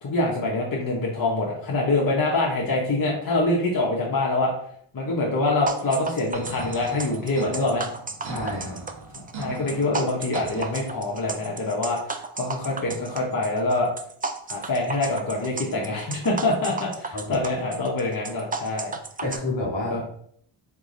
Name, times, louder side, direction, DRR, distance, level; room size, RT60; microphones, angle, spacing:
voice 1, 0.0-4.5 4.9-7.9 9.4-13.9 14.5-18.9 19.9-20.0, left 2 dB, 40° left, -3 dB, 1.0 m, -25 dB
sound 1, 5.7-19.4, right 4 dB, 20° right, 0.3 m, -33 dB
sound 2, 6.3-11.3, right 3 dB, 65° right, 1.2 m, -40 dB
voice 2, 8.2-8.8 17.1-17.4 19.2-20.1, left 2 dB, 65° left, -2 dB, 1.7 m, -29 dB
3.6 x 3.1 x 3.8 m, 0.65 s
cardioid pair, 70°, 49 cm